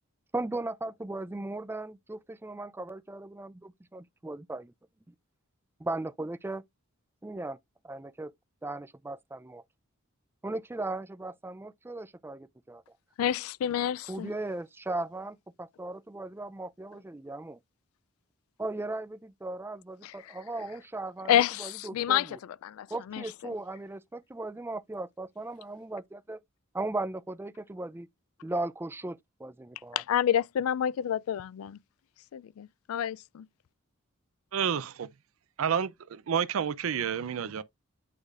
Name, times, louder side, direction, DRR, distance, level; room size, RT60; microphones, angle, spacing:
voice 1, 0.3-4.7 5.1-5.2 5.8-6.6 7.2-7.6 7.8-8.3 8.6-9.6 10.4-12.8 14.1-17.6 18.6-21.3 21.6-22.4 22.9-26.4 26.7-28.1 28.4-30.0, right 2 dB, 10° right, 0.3 m, -37 dB
voice 2, 13.2-14.3 20.0-20.4 21.3-23.5 29.9-31.8 32.3-33.5, left 10 dB, 80° left, 0.3 m, -29 dB
voice 3, 34.5-35.1 35.6-37.6, right 7 dB, 75° right, 0.5 m, -29 dB
8.5 x 4.8 x 2.4 m
head